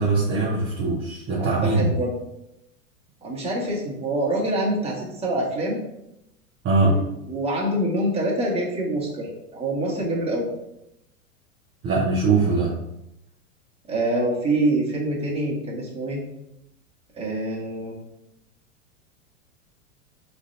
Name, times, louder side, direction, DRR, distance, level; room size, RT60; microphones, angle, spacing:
voice 1, 0.0-1.9 6.6-7.0 11.8-12.7, right 3 dB, 30° right, -5 dB, 1.0 m, -21 dB
voice 2, 1.4-2.1 3.2-5.8 6.8-10.5 13.9-16.2 17.2-17.9, right 1 dB, 15° right, -4 dB, 1.5 m, -26 dB
5.0 x 3.3 x 2.7 m, 0.84 s
hypercardioid pair, 105°, 43 cm